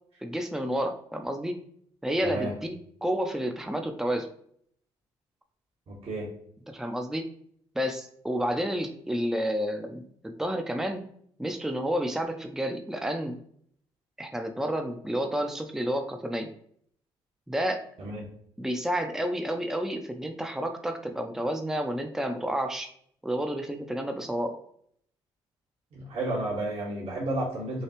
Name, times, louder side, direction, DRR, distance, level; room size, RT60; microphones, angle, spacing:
voice 1, 0.2-1.6 2.0-4.3 6.7-7.2 7.7-11.0 11.4-13.4 14.2-16.5 17.5-17.8 18.6-22.9 23.2-24.5, equal, 5° right, 5 dB, 0.6 m, -30 dB
voice 2, 2.2-2.5 5.9-6.3 18.0-18.2 25.9-27.8, right 1 dB, 55° right, -4 dB, 1.6 m, -32 dB
6.5 x 2.4 x 3.0 m, 0.64 s
supercardioid pair, 65°, 12 cm